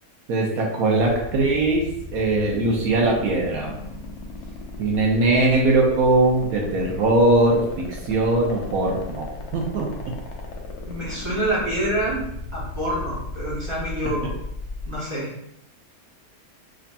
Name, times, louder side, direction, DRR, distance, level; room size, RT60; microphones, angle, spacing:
voice 1, 0.3-1.9 2.1-3.8 4.8-9.9, right 2 dB, 70° right, -1 dB, 1.1 m, -20 dB
sound 1, 1.2-15.0, left 3 dB, 80° left, 1.1 m, -37 dB
voice 2, 10.9-12.2 12.5-14.3 14.8-15.3, right 1 dB, 25° right, -8 dB, 0.9 m, -26 dB
4.9 x 2.7 x 2.2 m, 0.81 s
omnidirectional pair, 1.6 m